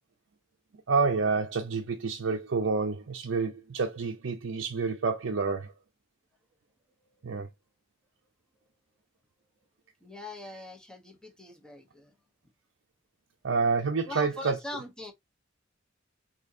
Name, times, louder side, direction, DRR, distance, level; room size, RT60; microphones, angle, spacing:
voice 1, 0.9-5.7 7.2-7.5 13.4-14.6, right 4 dB, 70° right, 0.5 m, -28 dB
voice 2, 10.0-12.1 14.1-15.1, left 1 dB, 5° left, 0.9 m, -41 dB
4.3 x 2.8 x 2.6 m
head